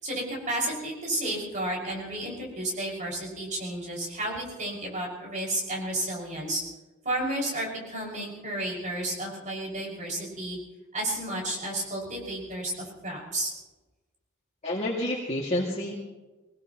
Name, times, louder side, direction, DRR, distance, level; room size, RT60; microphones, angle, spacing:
voice 1, 0.0-6.6 7.0-10.6 10.9-13.5, right 1 dB, 40° right, -2 dB, 5.9 m, -32 dB
voice 2, 14.6-16.0, left 1 dB, 30° left, -5 dB, 2.3 m, -29 dB
24.0 x 19.5 x 3.1 m, 1.2 s
head